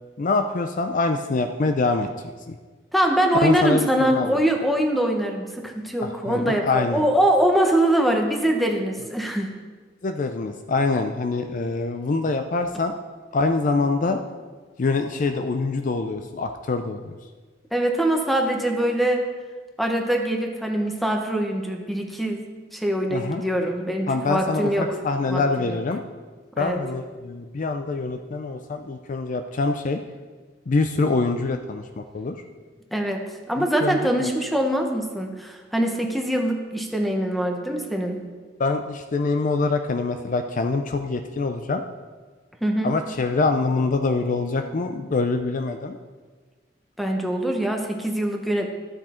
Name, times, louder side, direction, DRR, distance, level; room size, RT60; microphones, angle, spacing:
voice 1, 0.2-2.1 2.5-2.6 3.4-4.4 6.0-7.1 10.0-12.9 13.3-14.2 14.8-17.0 23.1-23.4 24.1-26.0 26.6-30.0 30.7-32.4 33.6-34.3 38.6-41.8 42.8-46.0, left 3 dB, 45° left, 7 dB, 0.5 m, -25 dB
voice 2, 2.9-9.5 17.7-19.3 19.8-22.5 22.7-24.9 25.3-25.4 25.7-25.8 26.6-26.8 32.9-33.2 33.5-38.2 42.6-42.9 47.0-48.8, right 1 dB, ahead, 2 dB, 1.0 m, -23 dB
12.5 x 6.2 x 4.4 m, 1.4 s
head